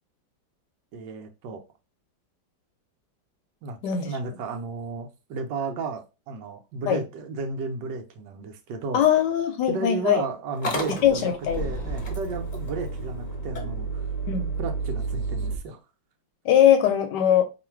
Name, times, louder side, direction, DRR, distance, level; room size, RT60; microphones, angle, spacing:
voice 1, 0.9-1.6 3.6-9.0 9.7-14.0 14.6-15.8, right 4 dB, 75° right, 1.2 m, -33 dB
voice 2, 8.9-10.2 11.0-11.6 14.3-14.5 16.4-17.4, left 9 dB, 75° left, 1.1 m, -21 dB
Motor vehicle (road) / Engine starting, 10.5-15.6, right 3 dB, 40° left, 0.7 m, -31 dB
3.1 x 2.5 x 4.4 m
omnidirectional pair, 2.1 m